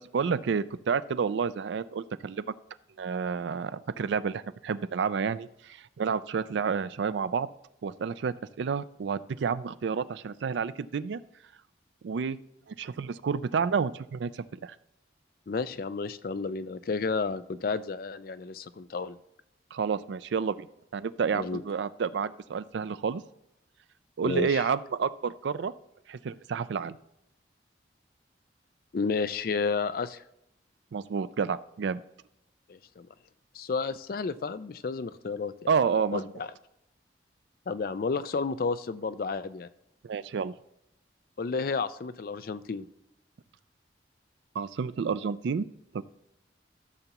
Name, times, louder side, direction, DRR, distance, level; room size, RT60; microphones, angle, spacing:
voice 1, 0.0-2.5 3.0-7.5 7.8-11.2 12.0-12.4 12.7-14.7 19.7-20.7 20.9-23.2 24.2-25.7 26.1-27.0 30.9-32.0 35.7-36.2 40.0-40.5 44.6-45.7 45.9-46.0, right 6 dB, 75° right, 16 dB, 0.4 m, -30 dB
voice 2, 15.5-19.2 21.3-21.6 24.2-24.6 28.9-30.2 32.7-33.1 33.5-35.5 36.1-36.5 37.7-39.7 41.4-42.9, left 4 dB, 50° left, 13 dB, 0.4 m, -31 dB
14.0 x 6.9 x 3.0 m, 0.83 s
head